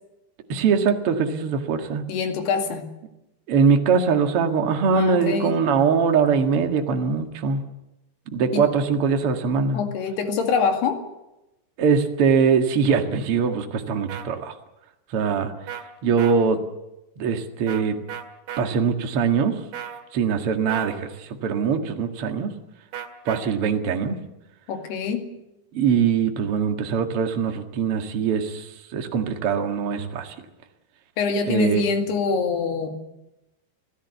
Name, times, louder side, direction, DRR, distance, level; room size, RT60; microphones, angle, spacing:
voice 1, 0.5-2.1 3.5-7.6 8.3-9.8 11.8-14.5 15.1-15.5 16.0-16.6 17.2-18.0 18.6-19.6 20.1-22.5 23.3-24.1 25.7-30.3 31.5-31.8, right 6 dB, 50° right, 5 dB, 1.9 m, -22 dB
voice 2, 2.1-2.9 4.9-5.6 8.5-8.7 9.7-11.0 24.7-25.3 31.2-33.0, left 5 dB, 65° left, 5 dB, 4.1 m, -25 dB
sound 1, 14.1-14.2 15.7-15.8 16.2-16.4 17.7-17.8 18.1-18.6 19.7-20.0 20.7-21.0 22.9-23.4, right 9 dB, 80° right, 4.1 m, -34 dB
28.0 x 16.5 x 8.3 m, 0.95 s
omnidirectional pair, 5.2 m